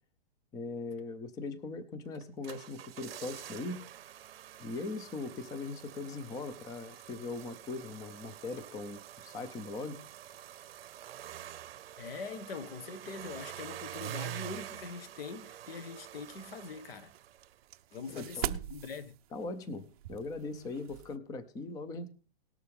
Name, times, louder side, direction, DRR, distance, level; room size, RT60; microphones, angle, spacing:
voice 1, 0.5-3.8 4.6-10.0 18.1-18.6 19.3-22.1, left 3 dB, 10° left, 0.6 m, -40 dB
sound 1, 2.1-17.6 17.9-18.0, right 12 dB, 75° right, 0.7 m, -47 dB
voice 2, 12.0-17.1 17.9-19.1, left 4 dB, 75° left, 1.6 m, -43 dB
sound 2, 16.2-21.2, right 13 dB, 40° right, 0.6 m, -43 dB
19.0 x 6.6 x 3.6 m
hypercardioid pair, 150°, 30 cm